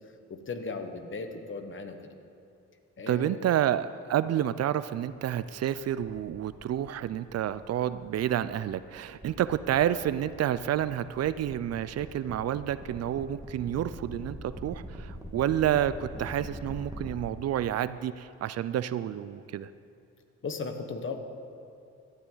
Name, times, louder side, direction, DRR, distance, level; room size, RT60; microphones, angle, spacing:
voice 1, 0.3-2.0 3.0-3.5 20.4-21.2, left 4 dB, 40° left, 7 dB, 1.3 m, -36 dB
voice 2, 3.1-19.7, right 11 dB, 55° right, 15 dB, 0.5 m, -29 dB
sound 1, 5.8-17.2, equal, 10° right, 1.6 m, -45 dB
16.5 x 12.0 x 3.9 m, 2.6 s
cardioid pair, 90°, 30 cm